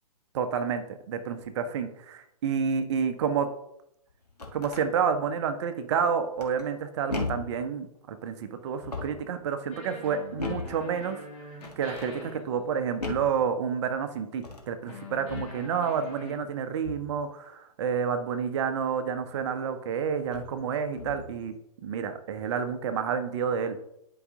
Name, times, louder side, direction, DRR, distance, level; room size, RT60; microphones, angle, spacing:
voice 1, 0.3-3.5 4.5-11.2 11.8-21.5 21.8-23.8, right 7 dB, 45° right, 9 dB, 0.9 m, -29 dB
sound 1, 4.1-4.9 6.4-6.8 7.1-7.6 8.7-9.3 10.4-10.8 11.6-12.1 13.0-13.4 14.3-14.7 15.3-15.6 16.8-17.2 19.3-19.4 20.2-20.6 20.9-21.4, left 3 dB, 90° left, 1.6 m, -36 dB
sound 2, 9.7-13.0 14.8-16.4, left 3 dB, 30° left, 2.3 m, -45 dB
9.7 x 5.1 x 3.7 m, 0.78 s
figure-of-eight pair, 120°, 20 cm